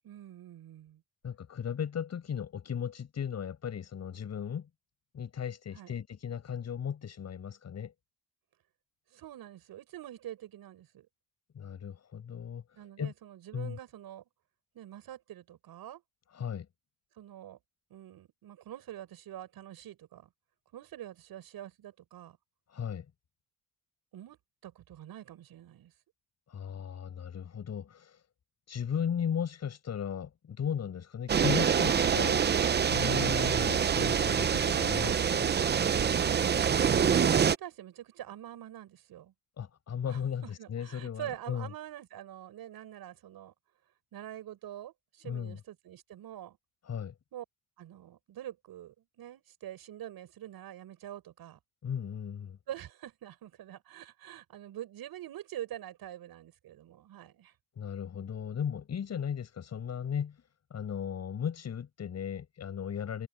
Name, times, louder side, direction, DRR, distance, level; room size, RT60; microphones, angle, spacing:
voice 1, 0.0-1.0 5.7-5.9 9.1-11.1 12.8-14.2 14.7-16.0 17.1-17.6 17.9-20.3 20.7-22.4 24.1-25.9 36.3-36.4 37.1-39.3 40.1-43.5 44.1-46.6 47.3-47.4 47.8-51.6 52.7-57.5, right 12 dB, 70° right, 6.8 m, -45 dB
voice 2, 1.2-4.7 5.1-7.9 11.5-12.6 13.0-13.1 13.5-13.8 16.3-16.7 22.7-23.1 26.5-28.2 28.7-32.4 32.7-35.5 39.6-41.7 45.2-45.6 46.9-47.2 51.8-52.6 57.8-60.4 60.7-63.3, left 8 dB, 45° left, 7.6 m, -36 dB
sound 1, 31.3-37.5, right 7 dB, 25° right, 0.6 m, -26 dB
cardioid pair, 160°, 38 cm